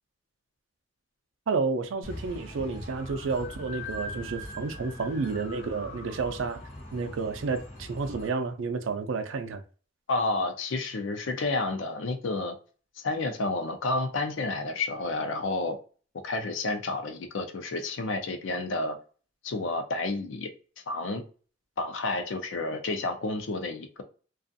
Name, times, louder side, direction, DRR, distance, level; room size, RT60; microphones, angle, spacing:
voice 1, 1.5-6.6 6.9-9.6, right 4 dB, 85° right, 0.4 m, -30 dB
sound 1, 2.0-8.3, left 1 dB, 40° left, 0.8 m, -41 dB
voice 2, 10.1-12.5 13.0-15.8 16.2-19.0 19.4-20.5 20.9-21.2 21.8-24.0, left 2 dB, 80° left, 0.5 m, -30 dB
2.4 x 2.4 x 2.5 m
head